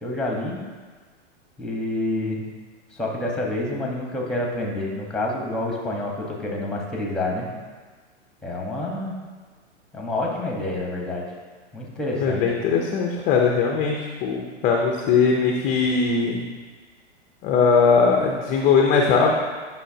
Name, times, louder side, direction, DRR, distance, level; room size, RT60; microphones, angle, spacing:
voice 1, 0.0-0.6 1.6-2.4 2.9-7.5 8.4-9.2 9.9-11.2 11.7-12.4, left 1 dB, ahead, -1 dB, 1.1 m, -28 dB
voice 2, 12.2-16.4 17.4-19.4, left 5 dB, 20° left, 1 dB, 0.6 m, -20 dB
9.8 x 5.6 x 2.8 m, 1.4 s
hypercardioid pair, 130°, 36 cm